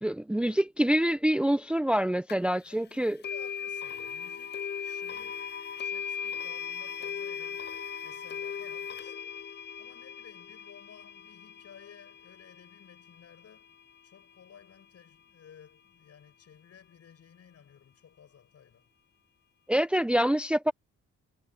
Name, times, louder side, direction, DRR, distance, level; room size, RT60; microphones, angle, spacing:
voice 1, 0.0-3.2 19.7-20.7, right 1 dB, 5° right, 0.6 m, -26 dB
sound 1, 2.3-2.4 3.2-14.2, left 7 dB, 35° left, 0.7 m, -38 dB
voice 2, 2.6-7.8 8.0-9.4 9.8-13.7 14.0-18.9, left 8 dB, 55° left, 7.9 m, -56 dB
cardioid pair, 90°, 30 cm